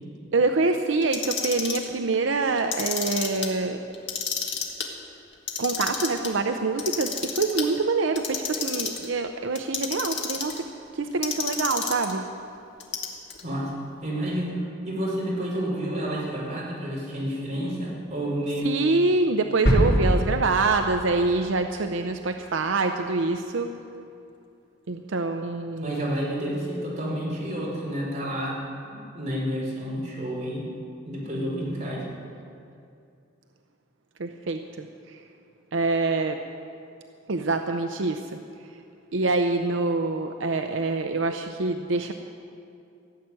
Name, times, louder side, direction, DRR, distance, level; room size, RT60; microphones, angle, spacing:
voice 1, 0.3-3.8 5.6-10.7 10.9-12.3 18.6-23.7 24.9-26.1 34.2-35.2 35.7-36.4 37.3-38.4 39.1-42.1, right 3 dB, 85° right, 6 dB, 0.7 m, -25 dB
Clock, 1.0-1.9 2.6-3.5 3.9-4.9 5.3-6.3 6.8-7.7 8.1-9.1 9.5-10.6 11.2-12.1 12.8-13.4, left 7 dB, 65° left, 1.9 m, -30 dB
voice 2, 14.0-18.8 25.8-30.7 31.0-32.0, equal, 35° right, -5 dB, 4.7 m, -30 dB
sound 1, 19.7-21.5 21.8-21.9, equal, 85° left, 4.2 m, -23 dB
16.0 x 7.7 x 9.6 m, 2.5 s
head